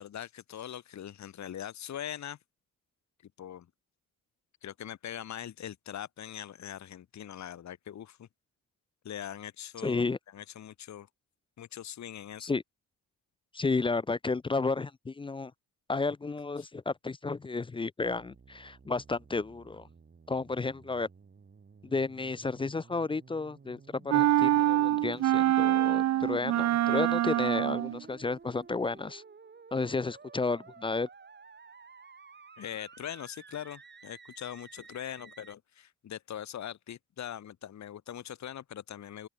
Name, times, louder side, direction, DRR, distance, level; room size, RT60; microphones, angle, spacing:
voice 1, 0.0-2.4 3.4-3.7 4.6-8.3 9.0-10.1 10.3-11.1 11.6-12.5 16.6-16.7 32.6-39.3, left 10 dB, 50° left, 1.4 m, -42 dB
voice 2, 9.8-10.2 12.4-12.6 13.5-15.5 15.9-19.9 20.3-21.1 21.8-29.2 29.7-31.1, left 3 dB, 15° left, 0.3 m, -32 dB
sound 1, 18.0-35.5, right 5 dB, 30° right, 3.0 m, -54 dB
sound 2, 24.1-28.0, right 13 dB, 50° right, 0.5 m, -25 dB
open air
cardioid pair, 120°, 36 cm